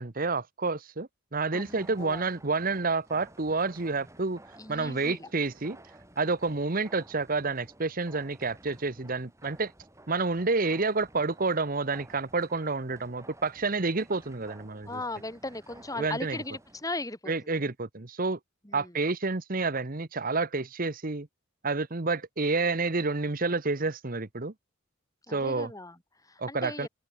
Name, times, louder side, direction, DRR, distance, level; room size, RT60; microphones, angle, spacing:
voice 1, 0.0-4.4 4.7-5.8 6.2-9.7 10.1-15.0 16.0-16.4 17.3-18.4 18.7-21.3 21.6-24.5 25.3-25.7 26.4-26.9, right 3 dB, 45° right, 1.2 m, -29 dB
voice 2, 1.5-2.3 4.6-5.3 14.9-17.3 18.6-19.0 25.3-26.9, left 2 dB, 15° left, 4.6 m, -38 dB
sound 1, 1.6-16.9, right 1 dB, 15° right, 6.9 m, -54 dB
head